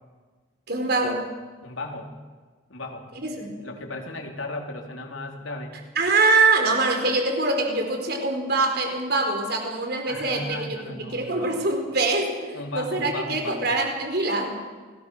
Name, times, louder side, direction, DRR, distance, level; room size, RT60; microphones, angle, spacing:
voice 1, 0.7-1.3 3.2-3.5 5.9-14.5, right 3 dB, 55° right, 3 dB, 4.8 m, -24 dB
voice 2, 1.6-2.1 2.7-3.1 3.3-5.7 10.1-11.6 12.5-13.7, left 2 dB, 90° left, 2 dB, 4.0 m, -35 dB
28.5 x 20.0 x 6.5 m, 1.4 s
head